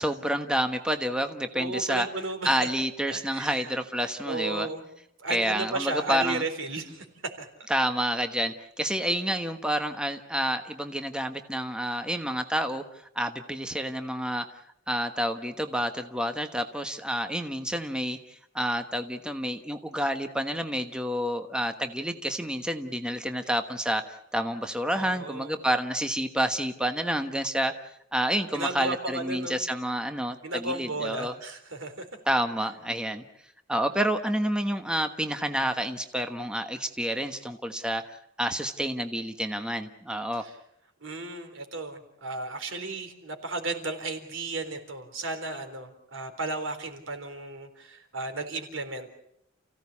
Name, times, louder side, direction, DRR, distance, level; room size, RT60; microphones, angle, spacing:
voice 1, 0.0-2.1 2.4-4.7 5.3-6.4 7.7-12.8 13.1-14.5 14.9-24.0 24.3-31.3 32.3-33.2 33.7-40.5, equal, 5° right, 6 dB, 1.2 m, -29 dB
voice 2, 1.5-2.7 3.1-3.7 4.0-4.9 5.2-7.5 25.0-25.6 28.5-29.6 30.4-32.1 40.4-40.6 41.0-49.1, right 2 dB, 80° right, 7 dB, 3.9 m, -34 dB
29.5 x 16.5 x 8.5 m, 0.77 s
head